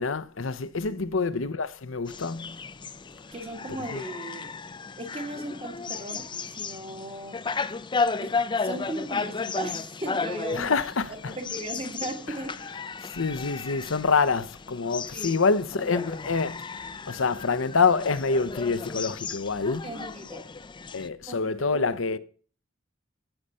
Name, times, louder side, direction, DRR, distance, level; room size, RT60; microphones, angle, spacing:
voice 1, 0.0-2.6 3.9-4.0 10.5-11.3 12.3-12.4 13.2-16.8 17.1-19.9 20.9-22.2, left 4 dB, 70° left, 0.8 m, -26 dB
sound 1, 2.1-21.1, left 4 dB, 25° left, 0.5 m, -34 dB
voice 2, 3.3-4.6 5.0-7.4 8.2-10.7 11.2-12.7 15.1-15.4 19.8-20.5 21.3-22.2, right 1 dB, 30° right, 1.5 m, -37 dB
15.0 x 6.7 x 5.6 m
head